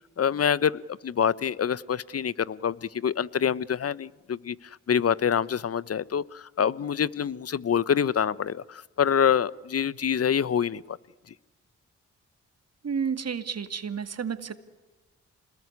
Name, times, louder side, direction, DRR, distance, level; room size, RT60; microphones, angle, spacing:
voice 1, 0.2-4.6 4.9-11.0, left 8 dB, 50° left, 20 dB, 1.0 m, -26 dB
voice 2, 12.8-14.5, right 6 dB, 55° right, 10 dB, 2.2 m, -31 dB
27.0 x 21.0 x 9.8 m, 1.2 s
supercardioid pair, 45°, 31 cm